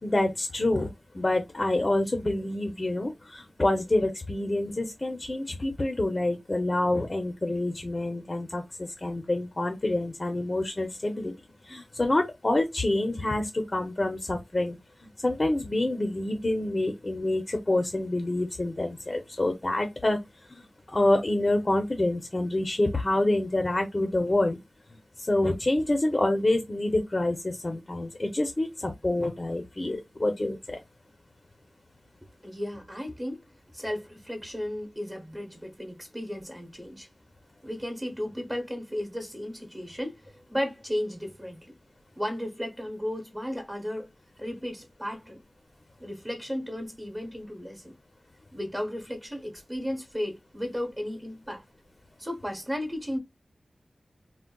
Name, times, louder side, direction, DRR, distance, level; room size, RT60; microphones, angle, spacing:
voice 1, 0.0-11.3 11.6-20.2 20.5-24.6 24.9-30.8, left 1 dB, 35° left, 0.5 m, -27 dB
voice 2, 32.4-33.5 33.7-37.1 37.6-41.7 42.1-44.1 44.4-45.4 46.0-48.0 48.5-51.6 52.2-53.2, equal, 15° right, 0.9 m, -34 dB
3.6 x 2.1 x 2.2 m
wide cardioid pair, 80°, 0 cm